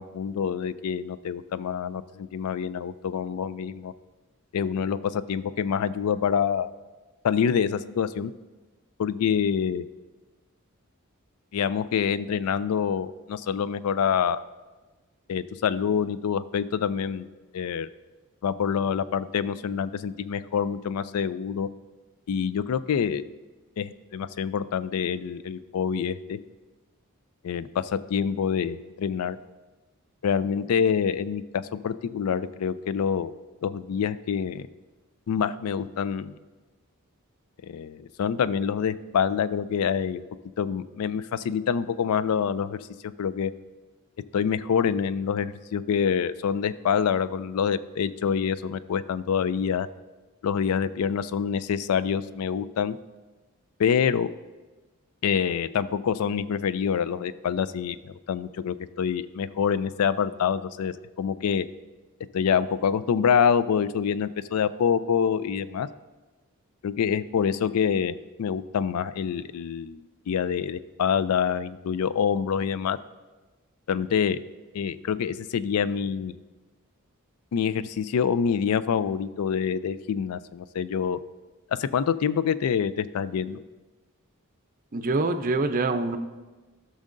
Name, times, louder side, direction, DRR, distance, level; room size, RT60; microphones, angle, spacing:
voice 1, 0.0-3.9 4.5-6.7 7.2-8.3 9.0-9.9 11.5-14.4 15.3-17.3 17.5-17.9 18.4-21.7 22.3-23.2 23.8-26.4 27.4-29.4 30.2-33.3 33.6-34.7 35.3-36.3 37.6-40.2 40.6-42.8 43.2-43.5 44.3-49.9 50.4-53.0 53.8-54.3 55.2-58.0 58.3-61.7 62.3-65.9 66.8-73.0 73.9-74.4 74.7-76.3 77.5-81.2 81.8-83.6, left 7 dB, 85° left, 16 dB, 0.4 m, -26 dB
voice 2, 84.9-86.2, right 3 dB, 40° right, 8 dB, 0.5 m, -25 dB
14.0 x 6.4 x 2.6 m, 1.2 s
head